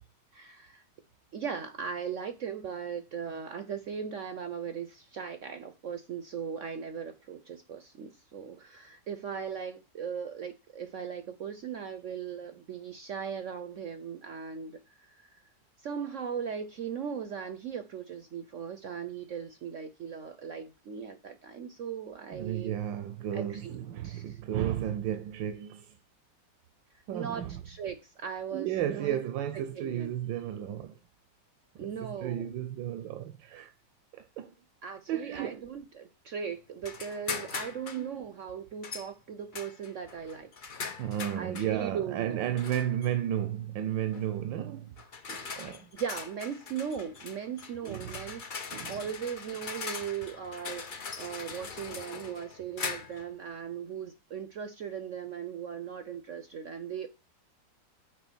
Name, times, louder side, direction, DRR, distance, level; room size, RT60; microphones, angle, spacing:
voice 1, 0.3-0.8 1.3-15.4 15.8-22.7 23.3-24.4 27.1-29.2 29.8-30.1 31.8-32.5 34.8-40.5 41.4-42.5 45.5-57.1, right 7 dB, 65° right, 0.8 m, -38 dB
voice 2, 22.3-26.0 27.1-27.6 28.5-31.0 32.0-33.7 34.1-34.5 35.1-35.7 38.0-38.1 41.0-44.9 45.3-45.9 47.8-48.2 48.7-49.0, right 11 dB, 85° right, 1.4 m, -33 dB
sound 1, 36.8-38.1 38.8-39.1 39.5-41.7 42.6-43.1 44.1-44.3 45.0-53.3, left 5 dB, 50° left, 0.5 m, -41 dB
6.5 x 4.8 x 6.1 m
omnidirectional pair, 2.0 m